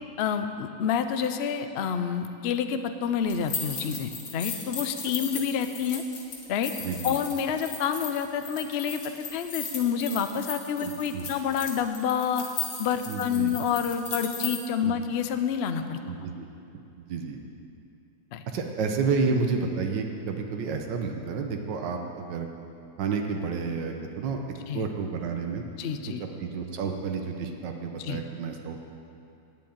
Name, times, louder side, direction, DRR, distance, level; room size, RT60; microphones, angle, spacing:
voice 1, 0.2-6.0 6.5-6.7 7.0-9.0 9.3-12.4 12.8-16.0 18.3-18.4 24.7-24.9 25.8-26.2 28.0-28.2, left 7 dB, 90° left, 8 dB, 0.5 m, -28 dB
sound 1, 3.3-14.6, left 5 dB, 55° left, 1.7 m, -37 dB
voice 2, 6.8-7.1 10.8-11.3 13.1-13.5 14.8-15.0 16.0-16.5 17.1-17.4 18.5-22.5 23.0-24.4 24.7-25.6 26.1-28.9, right 5 dB, 85° right, 3 dB, 1.5 m, -30 dB
9.0 x 7.7 x 8.6 m, 2.7 s
omnidirectional pair, 1.9 m